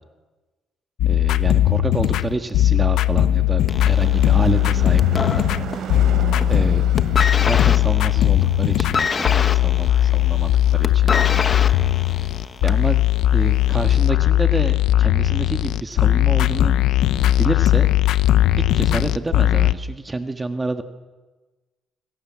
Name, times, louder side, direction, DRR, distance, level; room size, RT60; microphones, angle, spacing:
dubstep bass, 1.0-19.7, left 13 dB, 80° left, 1.0 m, -18 dB
voice 1, 1.1-5.4 6.5-6.8 7.4-11.1 12.6-13.0 13.3-16.8 17.4-17.9 18.6-20.8, right 3 dB, 20° right, 7 dB, 1.8 m, -28 dB
Car passing by / Truck / Engine, 2.5-11.2, right 9 dB, 70° right, 3.9 m, -34 dB
sound 1, 3.7-6.0 6.3-6.7 7.0-12.9 13.8-13.9, left 5 dB, 35° left, 1.3 m, -26 dB
27.0 x 26.5 x 7.6 m, 1.2 s
cardioid pair, 115°, 0 cm